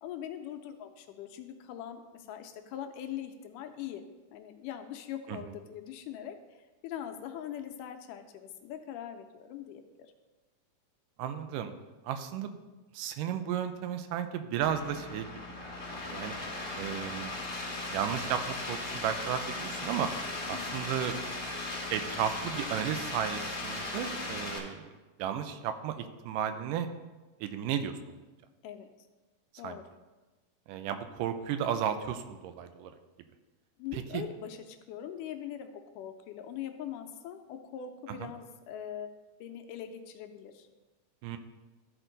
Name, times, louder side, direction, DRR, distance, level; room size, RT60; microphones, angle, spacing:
voice 1, 0.0-4.0 4.3-6.4 6.8-10.1 20.5-20.9 28.6-28.9 29.6-29.9 33.8-39.1 39.4-40.7, left 10 dB, 85° left, 6 dB, 2.1 m, -42 dB
voice 2, 11.2-11.7 12.0-12.6 12.9-15.3 15.6-16.4 16.7-17.3 17.9-20.1 20.5-21.2 21.9-24.9 25.2-26.9 27.4-28.2 29.6-29.8 30.7-32.9 33.9-34.2 41.2-41.4, right 9 dB, 85° right, 9 dB, 2.2 m, -34 dB
sound 1, 14.6-24.6, left 2 dB, 45° left, 0.9 m, -37 dB
13.5 x 4.5 x 3.9 m, 1.2 s
omnidirectional pair, 3.8 m